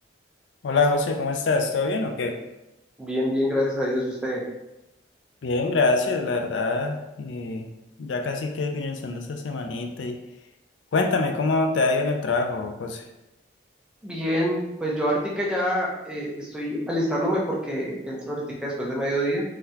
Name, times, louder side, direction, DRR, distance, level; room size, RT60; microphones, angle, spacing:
voice 1, 0.6-2.4 5.4-7.7 8.0-10.2 10.9-13.0, left 3 dB, 80° left, 5 dB, 0.4 m, -25 dB
voice 2, 3.0-4.4 14.0-19.4, equal, 5° right, -4 dB, 0.6 m, -26 dB
3.8 x 3.2 x 2.8 m, 0.95 s
head